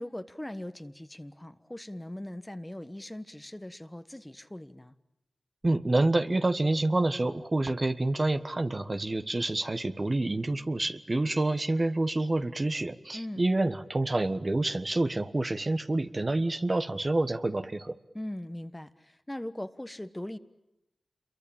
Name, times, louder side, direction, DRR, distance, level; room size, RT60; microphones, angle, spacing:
voice 1, 0.0-4.9 13.1-13.5 18.1-20.4, left 1 dB, 15° left, 11 dB, 1.3 m, -40 dB
voice 2, 5.6-17.9, right 2 dB, 40° right, 9 dB, 1.4 m, -28 dB
28.0 x 23.0 x 8.8 m, 0.92 s
cardioid pair, 40°, 0 cm